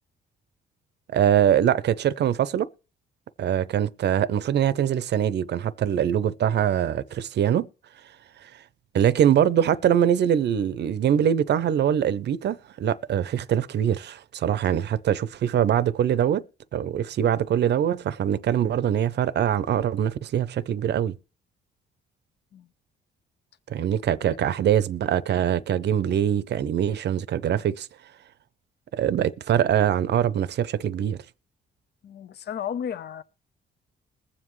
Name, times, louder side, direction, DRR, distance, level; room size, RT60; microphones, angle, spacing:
voice 1, 1.1-2.7 3.4-7.7 8.4-8.5 8.9-16.4 16.7-21.2 23.7-27.9 28.9-31.2, right 10 dB, 60° right, 0.6 m, -23 dB
voice 2, 24.2-24.7 32.0-33.2, left 8 dB, 55° left, 0.7 m, -34 dB
21.0 x 7.5 x 3.2 m
cardioid pair, 90°, 20 cm